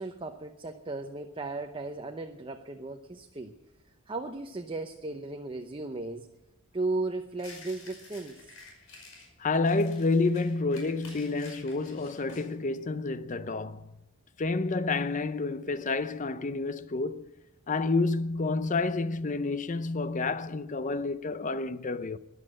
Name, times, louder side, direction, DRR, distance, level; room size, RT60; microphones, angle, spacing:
voice 1, 0.0-3.5 4.1-6.3 6.7-8.5, right 2 dB, 25° right, 0.8 m, -36 dB
sound 1, 7.4-9.3 9.6-12.5, left 3 dB, 80° left, 5.3 m, -50 dB
voice 2, 9.4-13.9 14.4-17.2 17.7-22.2, left 3 dB, 35° left, 0.6 m, -29 dB
14.0 x 11.0 x 7.6 m
head